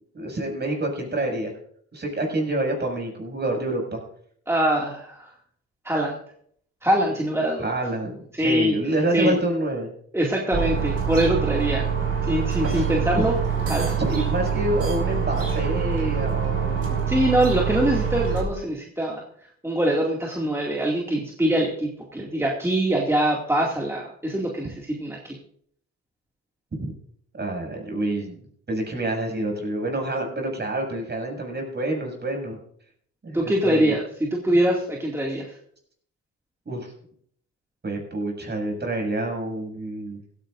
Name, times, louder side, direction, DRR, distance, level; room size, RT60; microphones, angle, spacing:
voice 1, 0.1-1.5 1.9-4.0 7.6-9.9 12.7-12.9 13.1-13.2 14.0-17.2 26.8-26.9 27.4-28.4 28.7-32.6 33.2-33.9 36.6-36.9 37.8-40.2, right 1 dB, 35° right, 1 dB, 6.8 m, -27 dB
voice 2, 4.5-5.3 5.8-6.2 6.8-7.7 8.3-8.8 9.1-9.3 10.1-11.9 12.3-13.3 13.7-14.0 17.1-19.2 19.6-25.4 33.3-35.6, right 1 dB, 10° right, -2 dB, 2.4 m, -23 dB
sound 1, 10.5-18.4, right 6 dB, 50° right, 5.7 m, -25 dB
16.0 x 15.0 x 2.6 m, 0.62 s
cardioid pair, 90°, 30 cm